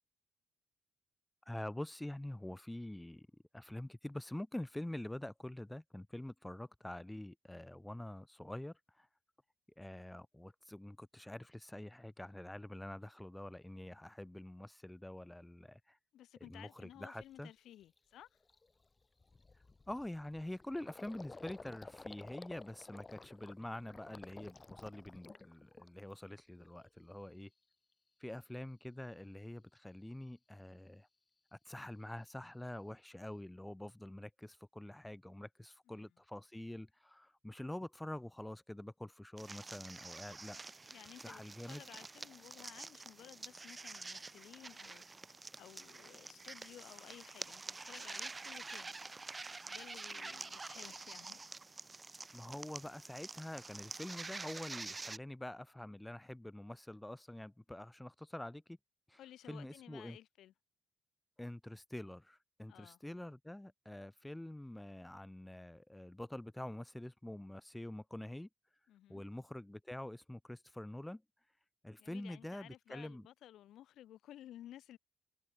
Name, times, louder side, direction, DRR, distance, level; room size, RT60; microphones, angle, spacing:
voice 1, 1.5-3.3 3.5-9.1 9.8-16.0 16.5-17.5 19.9-27.5 28.2-31.1 31.5-40.6 41.2-41.8 52.3-58.8 59.1-59.2 59.5-60.2 61.4-68.5 69.1-71.2 71.8-73.3, left 1 dB, 10° left, 3.0 m, -46 dB
voice 2, 16.1-18.4 35.9-36.1 40.9-49.0 49.6-51.4 59.2-60.5 62.7-63.0 68.9-69.2 72.0-75.0, left 12 dB, 80° left, 6.6 m, -56 dB
Gurgling, 16.6-16.7 17.2-17.4 17.8-18.0 18.2-26.3 26.6-27.3, left 3 dB, 25° left, 5.0 m, -54 dB
sound 1, 39.4-55.2, right 3 dB, 25° right, 3.7 m, -48 dB
cardioid pair, 90°, 0 cm